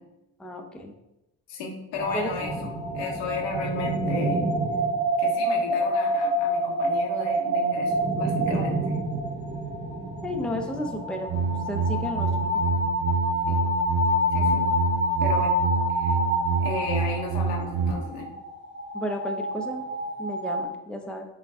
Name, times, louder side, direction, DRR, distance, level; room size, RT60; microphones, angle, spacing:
voice 1, 0.4-0.9 2.1-2.3 2.6-2.7 10.2-11.3 11.7-12.6 18.9-19.8 20.2-21.3, left 1 dB, ahead, 3 dB, 0.6 m, -33 dB
voice 2, 1.5-4.4 5.2-9.0 13.5-13.6 14.3-14.6 15.2-15.5 15.9-16.2 16.6-18.3, left 4 dB, 85° left, 0 dB, 0.9 m, -34 dB
sound 1, 1.9-20.6, equal, 25° right, 1.1 m, -27 dB
sound 2, 11.3-17.9, right 5 dB, 55° right, 0.8 m, -27 dB
5.6 x 2.2 x 3.5 m, 0.93 s
supercardioid pair, 65°, 41 cm